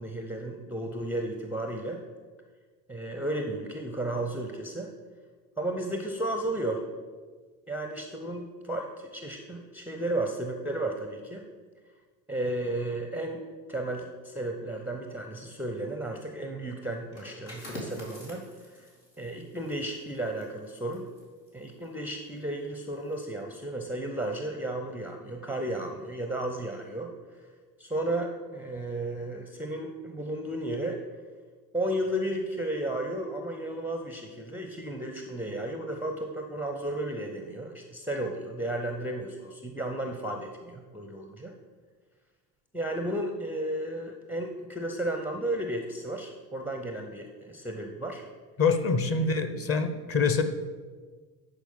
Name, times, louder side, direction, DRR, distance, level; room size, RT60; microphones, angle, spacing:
voice 1, 0.0-2.0 2.9-4.9 5.6-6.8 7.7-11.4 12.3-13.4 13.7-18.9 19.2-21.1 21.5-27.5 27.8-31.0 31.7-41.5 42.7-48.3 49.1-49.3, right 1 dB, 5° right, 4 dB, 0.5 m, -33 dB
sound 1, 17.0-22.5 22.9-23.1, left 1 dB, 85° left, 2.5 m, -47 dB
voice 2, 48.6-50.4, left 4 dB, 30° left, 9 dB, 0.8 m, -25 dB
10.5 x 4.6 x 5.3 m, 1.5 s
figure-of-eight pair, 75°, 50 cm